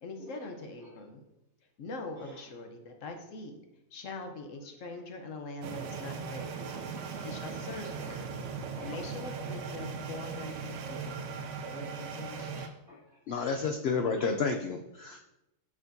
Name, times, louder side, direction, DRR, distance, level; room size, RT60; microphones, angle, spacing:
voice 1, 0.0-1.2 1.8-3.6 3.9-6.6 7.2-8.3 8.8-11.4 11.6-12.5, left 2 dB, 60° left, 5 dB, 1.0 m, -43 dB
sound 1, 5.6-12.7, right 5 dB, 65° right, 0.8 m, -39 dB
voice 2, 6.7-7.7 8.8-9.0 12.0-13.6 14.2-14.3, left 1 dB, ahead, -10 dB, 1.9 m, -54 dB
voice 3, 13.3-15.2, left 4 dB, 85° left, 4 dB, 0.5 m, -30 dB
6.8 x 6.0 x 2.6 m, 0.93 s
omnidirectional pair, 1.6 m